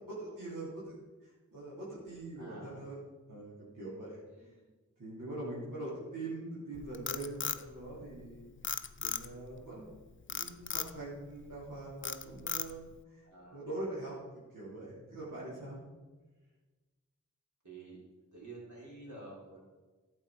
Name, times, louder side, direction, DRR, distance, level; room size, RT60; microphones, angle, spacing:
voice 1, 0.1-0.9 1.2-4.2 5.0-8.5 9.0-9.9 10.3-13.2 13.5-14.2 14.5-15.8, right 2 dB, 90° right, -9 dB, 3.4 m, -43 dB
voice 2, 2.4-2.8 4.3-4.7 7.8-8.0 9.7-9.9 13.2-13.6 17.6-18.0 18.3-19.6, right 2 dB, 65° right, -5 dB, 4.2 m, -51 dB
Frog, 6.7-8.3 8.6-9.5 10.3-10.9 11.4-11.7 12.0-13.0, left 5 dB, 40° left, 0.6 m, -36 dB
11.5 x 7.8 x 4.9 m, 1.3 s
cardioid pair, 40°, 31 cm